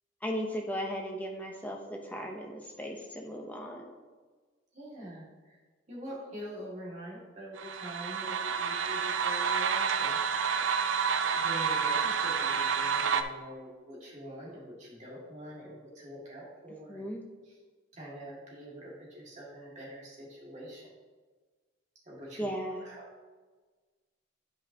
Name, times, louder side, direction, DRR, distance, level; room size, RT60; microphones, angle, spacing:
voice 1, 0.2-3.9 16.9-17.2 22.4-22.8, equal, 10° left, 1 dB, 0.6 m, -36 dB
voice 2, 4.7-5.6 5.9-10.6 11.3-17.0 17.4-17.6 17.9-20.9 22.0-23.1, equal, 35° right, -5 dB, 1.9 m, -45 dB
sound 1, 7.6-13.2, right 6 dB, 70° right, 0.5 m, -29 dB
11.0 x 5.3 x 2.8 m, 1.4 s
head